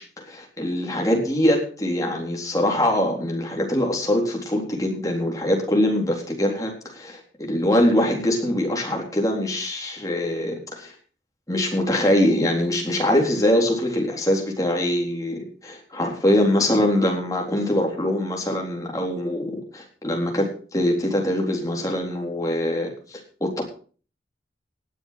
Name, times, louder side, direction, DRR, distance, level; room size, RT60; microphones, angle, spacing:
voice 1, 0.0-10.9 11.5-23.6, left 1 dB, 20° left, 0 dB, 3.9 m, -23 dB
19.0 x 7.3 x 5.9 m, 0.41 s
head